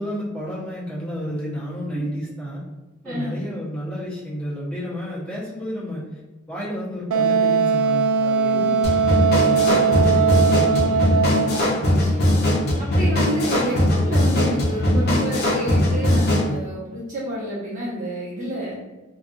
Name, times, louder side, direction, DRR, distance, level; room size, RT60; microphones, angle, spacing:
voice 1, 0.0-2.6 3.0-6.1 6.5-8.8 9.3-11.0, equal, 5° left, -9 dB, 0.8 m, -31 dB
voice 2, 3.0-3.4 8.4-9.0 11.9-12.4 12.8-18.8, equal, 40° right, -9 dB, 1.0 m, -29 dB
Wind instrument woodwind instrument, 7.1-11.8, right 5 dB, 85° right, 0.3 m, -20 dB
sound 1, 8.8-16.5, left 1 dB, 50° left, 0.6 m, -20 dB
2.5 x 2.4 x 2.5 m, 1.2 s
head